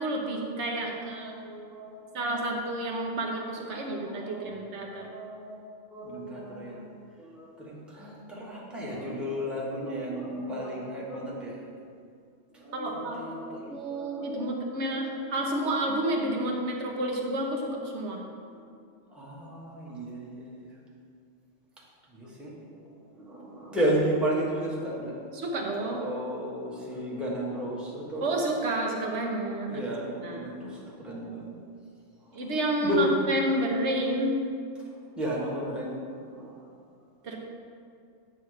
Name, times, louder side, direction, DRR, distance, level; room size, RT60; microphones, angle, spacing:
voice 1, 0.0-1.3 2.1-5.0 12.7-13.3 13.7-18.2 25.4-26.0 28.2-29.8 30.2-30.5 32.3-34.4 37.2-37.4, right 1 dB, 60° right, 0 dB, 1.3 m, -30 dB
voice 2, 0.6-2.5 3.7-5.6 5.9-11.6 12.5-15.5 15.8-16.0 18.4-18.6 19.1-20.8 22.1-25.2 25.9-28.4 29.7-31.5 32.2-32.5 32.8-33.0 34.8-36.0 36.3-36.7, equal, ahead, -6 dB, 1.2 m, -34 dB
8.8 x 3.5 x 6.4 m, 2.3 s
omnidirectional pair, 1.3 m